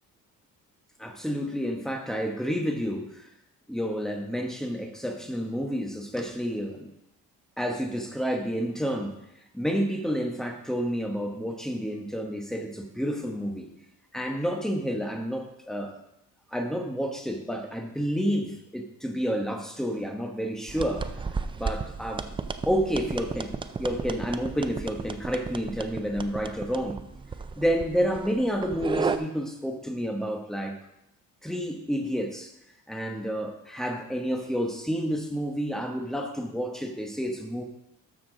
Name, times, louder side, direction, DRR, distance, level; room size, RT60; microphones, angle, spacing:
voice 1, 1.0-3.3 3.7-6.9 7.6-9.2 9.5-13.7 14.1-15.9 16.5-21.1 21.5-22.3 22.7-27.0 27.6-30.8 31.4-32.5 32.9-37.6, equal, ahead, 3 dB, 1.0 m, -30 dB
sound 1, 20.7-29.2, right 4 dB, 15° right, 0.3 m, -34 dB
12.5 x 6.8 x 3.9 m, 0.85 s
cardioid pair, 155°, 34 cm